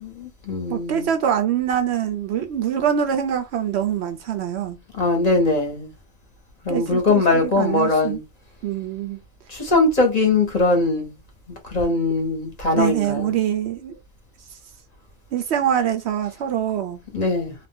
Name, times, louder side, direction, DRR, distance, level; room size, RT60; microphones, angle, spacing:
voice 1, 0.0-1.1 5.0-5.9 6.6-8.2 9.5-11.1 11.7-13.3 17.1-17.5, left 3 dB, 35° left, 0.8 m, -21 dB
voice 2, 0.7-4.8 6.7-8.2 8.6-9.2 12.7-13.9 15.3-17.0, right 9 dB, 65° right, 0.7 m, -24 dB
2.5 x 2.2 x 3.4 m
omnidirectional pair, 1.4 m